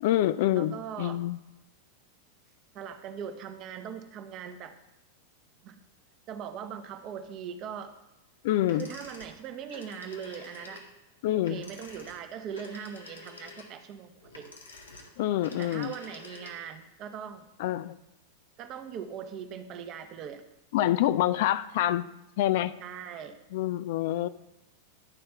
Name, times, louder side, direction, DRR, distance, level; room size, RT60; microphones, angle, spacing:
voice 1, 0.0-1.4 8.4-8.9 11.2-11.6 15.2-15.9 17.6-17.9 20.7-22.1 22.4-22.7 23.5-24.3, left 13 dB, 50° left, 14 dB, 0.4 m, -26 dB
voice 2, 0.6-1.2 2.7-4.7 5.6-5.8 6.3-7.9 8.7-10.9 11.3-14.5 15.6-17.5 18.6-20.4 22.8-23.4, right 8 dB, 35° right, 8 dB, 0.9 m, -40 dB
sound 1, 8.7-16.8, left 3 dB, 75° left, 1.6 m, -49 dB
12.0 x 4.3 x 5.7 m, 0.90 s
figure-of-eight pair, 90°, 0 cm